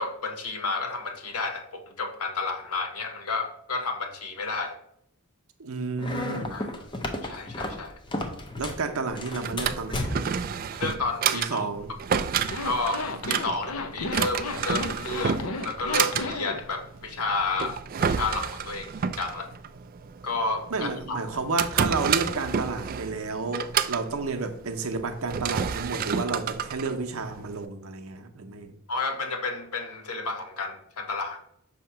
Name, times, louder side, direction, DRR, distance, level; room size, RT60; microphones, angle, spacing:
voice 1, 0.0-4.8 6.5-6.8 7.2-8.0 10.8-11.7 12.6-15.4 15.6-19.5 20.2-21.2 28.9-31.4, left 3 dB, 85° left, 1.1 m, -31 dB
voice 2, 5.6-6.6 7.4-7.6 8.5-10.7 11.3-11.9 20.7-28.7, right 3 dB, 65° right, 0.7 m, -31 dB
sound 1, 6.0-8.9 9.2-10.5, left 1 dB, 20° left, 0.6 m, -33 dB
Drawer open or close, 9.1-27.6, right 7 dB, 40° right, 0.3 m, -30 dB
Zipper (clothing), 12.4-16.6, left 3 dB, 65° left, 0.6 m, -33 dB
6.3 x 2.9 x 5.7 m
head